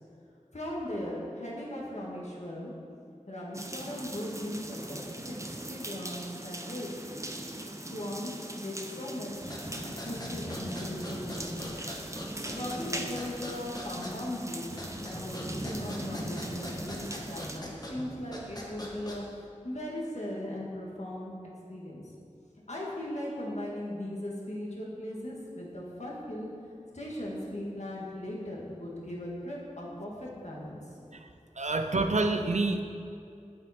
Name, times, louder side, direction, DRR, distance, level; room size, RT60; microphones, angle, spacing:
voice 1, 0.5-2.7 3.3-5.0 5.3-5.4 5.7-7.1 7.9-9.6 10.0-11.9 12.5-19.3 19.6-21.3 21.7-22.0 22.7-26.5 26.9-30.8, left 1 dB, 60° left, -4 dB, 1.9 m, -38 dB
sound 1, 3.5-17.6, right 1 dB, 25° right, 0.7 m, -40 dB
sound 2, 9.4-19.4, left 1 dB, 30° left, 1.4 m, -41 dB
voice 2, 31.6-32.8, right 3 dB, 65° right, 6 dB, 0.6 m, -27 dB
8.6 x 8.1 x 4.4 m, 2.5 s
wide cardioid pair, 45°, 13 cm